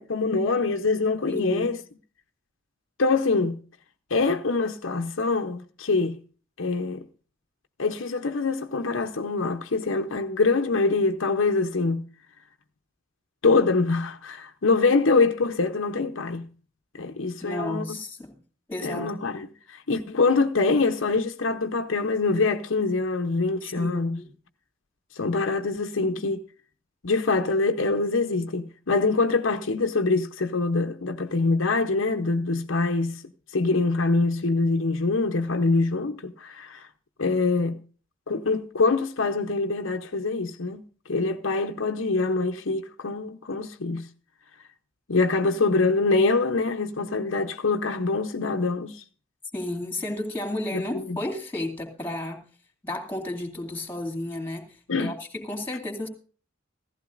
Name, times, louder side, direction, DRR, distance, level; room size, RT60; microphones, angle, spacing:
voice 1, 0.0-1.8 3.0-3.6 4.1-6.2 6.6-7.1 7.8-12.1 13.4-16.5 17.0-18.0 18.8-24.2 25.1-26.4 27.0-33.2 33.5-36.9 37.2-37.8 38.3-40.8 41.1-44.1 45.1-49.0 50.7-51.2 54.9-55.1, left 3 dB, 75° left, 0.8 m, -24 dB
voice 2, 1.3-1.7 17.4-18.3 18.7-19.2 23.6-24.3 26.1-26.2 49.5-52.4 52.8-56.1, left 1 dB, 10° left, 2.6 m, -33 dB
16.0 x 14.5 x 2.5 m
head